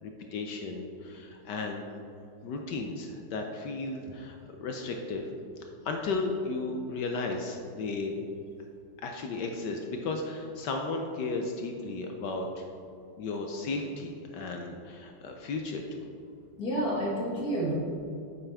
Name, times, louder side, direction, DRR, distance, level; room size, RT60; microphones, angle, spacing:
voice 1, 0.0-1.8 2.4-5.3 5.8-8.2 9.0-12.6 13.2-16.0, left 3 dB, 70° left, 3 dB, 1.1 m, -34 dB
voice 2, 16.6-17.7, right 1 dB, 45° left, -6 dB, 2.2 m, -29 dB
8.7 x 7.0 x 3.4 m, 2.5 s
omnidirectional pair, 2.3 m